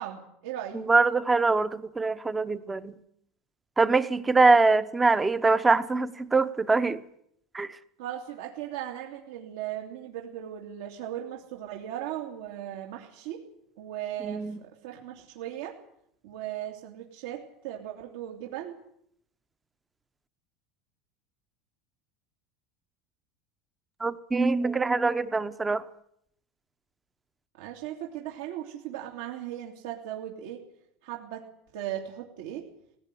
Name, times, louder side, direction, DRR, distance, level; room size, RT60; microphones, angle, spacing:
voice 1, 0.0-0.8 8.0-13.4 13.8-14.5 14.8-15.8 16.2-18.7 27.6-30.6 31.0-31.5 31.7-32.7, right 11 dB, 75° right, 1 dB, 2.8 m, -37 dB
voice 2, 0.7-3.0 3.8-7.0 7.5-7.7 14.2-14.6 24.0-25.8, right 3 dB, 10° right, 14 dB, 0.8 m, -23 dB
18.5 x 17.0 x 9.9 m, 0.72 s
cardioid pair, 175°, 0 cm